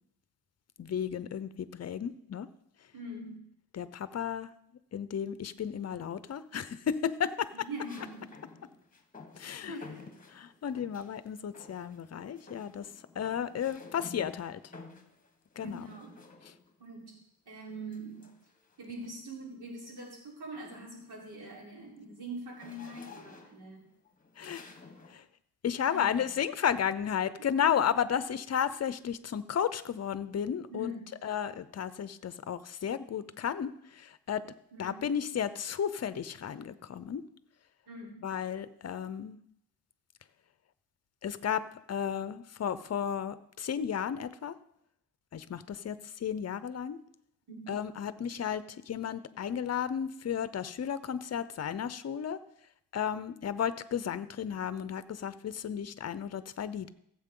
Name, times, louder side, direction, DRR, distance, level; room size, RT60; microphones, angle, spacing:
voice 1, 0.8-2.5 3.7-4.5 4.9-7.5 9.4-9.8 10.3-12.9 13.2-14.6 15.6-15.9 16.5-16.6 24.4-24.6 25.1-25.2 25.6-34.4 34.8-37.2 38.2-39.4 41.2-41.6 41.9-44.5 45.3-47.0 47.7-52.4 52.9-56.9, left 8 dB, 40° left, 14 dB, 0.7 m, -33 dB
voice 2, 2.9-3.4 7.5-8.3 9.7-10.1 15.6-16.2 16.8-17.2 17.5-18.3 18.8-23.8 25.9-26.4 27.6-27.8 30.7-31.1 34.7-35.0 37.9-38.2 47.5-47.7, right 1 dB, 70° right, -3 dB, 4.2 m, -43 dB
sound 1, 6.0-6.5 7.8-11.2 11.5-12.1 12.4-16.8 17.9-19.3 19.8-20.1 20.4-25.2, left 4 dB, 20° left, 1.3 m, -53 dB
15.5 x 7.6 x 3.8 m, 0.75 s
cardioid pair, 100°, 39 cm